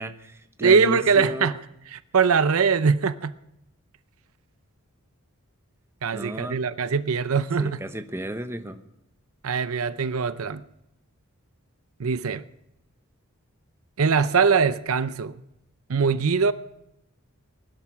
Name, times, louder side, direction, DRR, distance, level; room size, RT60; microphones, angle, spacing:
voice 1, 0.0-1.5 6.1-6.6 7.6-8.8, right 1 dB, 10° right, 1.0 m, -33 dB
voice 2, 0.6-1.6 1.9-3.3 6.0-7.8 9.4-10.6 12.0-12.4 14.0-15.3 15.9-16.5, right 5 dB, 70° right, 0.6 m, -22 dB
19.5 x 12.0 x 6.1 m
head